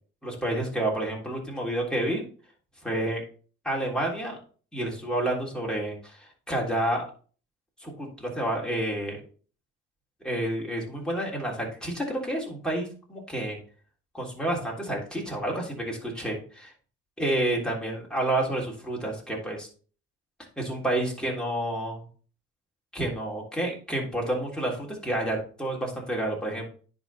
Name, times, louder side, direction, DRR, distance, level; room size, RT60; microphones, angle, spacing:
voice 1, 0.2-2.2 2.8-3.2 3.6-4.4 4.7-7.0 7.8-9.2 10.2-13.6 14.1-16.7 17.2-19.7 20.6-22.0 22.9-26.7, right 1 dB, ahead, -2 dB, 3.4 m, -29 dB
10.0 x 4.0 x 4.3 m, 0.40 s
supercardioid pair, 80°, 34 cm